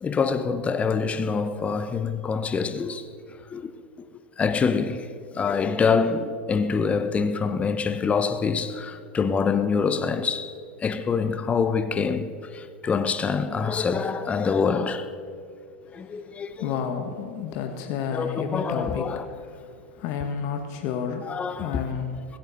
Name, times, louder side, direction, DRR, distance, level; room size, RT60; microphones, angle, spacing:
voice 1, 0.0-3.0 3.5-3.7 4.4-5.1 5.3-10.5 10.8-15.1 15.9-16.7 18.1-19.3 21.2-21.7, left 5 dB, 20° left, 0.8 m, -25 dB
voice 2, 16.6-19.5 20.0-21.3 21.6-22.2, left 7 dB, 50° left, 1.5 m, -30 dB
16.5 x 15.5 x 4.2 m
hypercardioid pair, 100°, 6 cm